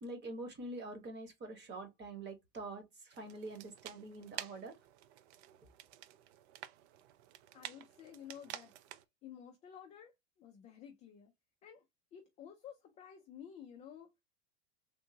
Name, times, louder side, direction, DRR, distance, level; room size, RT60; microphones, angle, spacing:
voice 1, 0.0-4.8, right 2 dB, 25° right, 1.2 m, -45 dB
sound 1, 3.1-9.0, right 12 dB, 55° right, 0.5 m, -50 dB
voice 2, 7.5-8.7 9.2-11.3 11.6-11.8 12.1-14.1, left 9 dB, 20° left, 0.3 m, -52 dB
3.6 x 2.6 x 2.6 m
hypercardioid pair, 120°, 41 cm